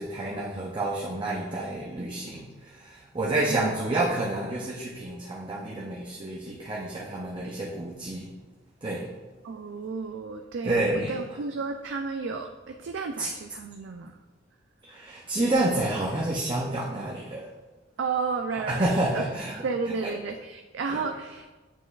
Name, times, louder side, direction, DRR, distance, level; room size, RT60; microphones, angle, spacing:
voice 1, 0.0-8.3 8.8-9.1 10.6-11.4 13.2-13.3 14.8-17.5 18.7-20.2 20.9-21.1, right 2 dB, 25° right, -3 dB, 0.6 m, -29 dB
voice 2, 9.4-14.2 18.0-19.2 19.6-21.5, right 4 dB, 70° right, 4 dB, 0.4 m, -32 dB
8.8 x 4.6 x 2.4 m, 1.2 s
head